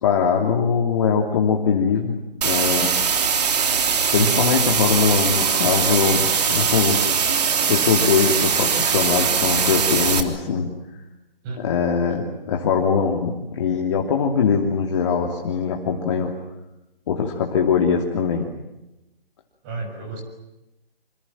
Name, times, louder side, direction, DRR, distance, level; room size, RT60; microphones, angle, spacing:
voice 1, 0.0-2.2 2.4-2.9 4.1-7.0 7.7-10.7 11.6-16.3 17.1-18.5, left 6 dB, 30° left, 1 dB, 3.0 m, -21 dB
sound 1, 2.4-10.2, right 6 dB, 45° right, 3.3 m, -21 dB
voice 2, 4.1-4.5 11.4-11.8 19.6-20.2, right 4 dB, 20° right, 4 dB, 6.6 m, -31 dB
27.5 x 27.0 x 7.4 m, 0.94 s
figure-of-eight pair, 155°, 29 cm